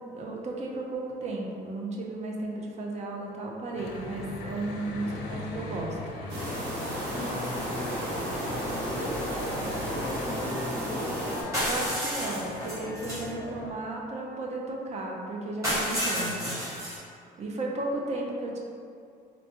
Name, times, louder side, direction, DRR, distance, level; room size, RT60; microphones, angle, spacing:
voice 1, 0.0-6.0 11.6-16.6 17.4-18.6, right 2 dB, 40° right, -1 dB, 0.5 m, -34 dB
Church bell / Traffic noise roadway noise, 3.7-13.7, left 2 dB, 90° left, 0.5 m, -40 dB
voice 2, 5.0-5.4 7.1-8.3 8.5-9.2 9.8-11.2 16.1-16.6, left 2 dB, 45° left, -2 dB, 0.6 m, -38 dB
sound 1, 6.3-11.4, right 1 dB, 75° right, 1.0 m, -33 dB
sound 2, 11.5-13.3 15.6-17.0, equal, 20° right, 1.4 m, -30 dB
4.0 x 2.2 x 2.8 m, 2.4 s
cardioid pair, 110°, 17 cm